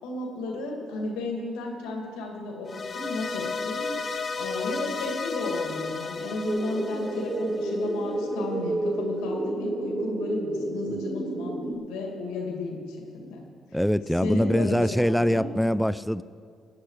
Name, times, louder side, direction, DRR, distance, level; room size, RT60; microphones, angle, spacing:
voice 1, 0.0-3.9 4.3-13.4 14.2-15.5, left 2 dB, 90° left, 1 dB, 2.3 m, -33 dB
sound 1, 2.6-7.9, left 4 dB, 45° left, 1.0 m, -33 dB
sound 2, 6.5-11.7, right 1 dB, 45° right, 1.9 m, -30 dB
voice 2, 13.7-16.2, equal, ahead, 16 dB, 0.5 m, -23 dB
18.5 x 9.6 x 4.9 m, 2.2 s
supercardioid pair, 60°, 0 cm